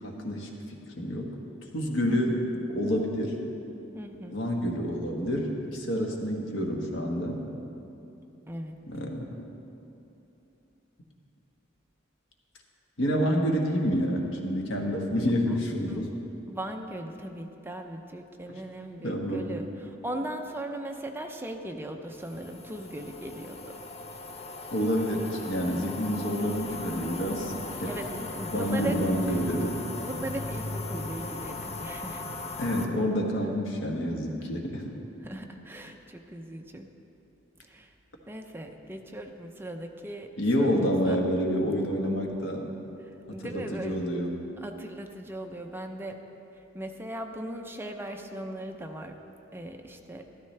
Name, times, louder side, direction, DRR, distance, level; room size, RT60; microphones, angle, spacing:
voice 1, 0.0-1.3 1.7-2.4 2.7-3.3 4.3-7.4 8.9-9.2 13.0-16.1 18.5-18.6 19.0-19.5 24.7-27.5 27.8-27.9 28.5-29.8 32.6-34.9 40.4-42.6 43.4-44.3, equal, 80° left, 1 dB, 1.4 m, -28 dB
voice 2, 2.0-2.4 3.9-4.4 8.5-8.8 15.5-15.6 15.9-16.2 16.5-23.6 27.9-29.0 30.0-32.3 35.2-36.9 37.7-37.9 38.3-40.3 40.6-41.2 43.3-44.0 44.6-46.2 46.7-49.2 49.5-50.3, right 1 dB, 10° right, 4 dB, 0.6 m, -38 dB
sound 1, 22.1-32.9, left 2 dB, 35° left, 0.7 m, -38 dB
13.0 x 12.5 x 3.3 m, 2.9 s
head